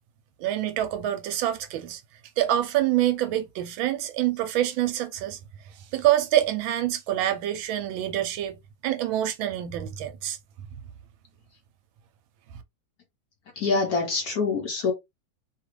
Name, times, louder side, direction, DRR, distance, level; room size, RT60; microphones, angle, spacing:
voice 1, 0.4-2.0 2.4-5.4 5.9-8.5 8.8-10.4, right 12 dB, 80° right, 1.3 m, -26 dB
voice 2, 13.6-14.9, left 4 dB, 60° left, 1.0 m, -25 dB
3.2 x 2.4 x 3.0 m
omnidirectional pair, 2.2 m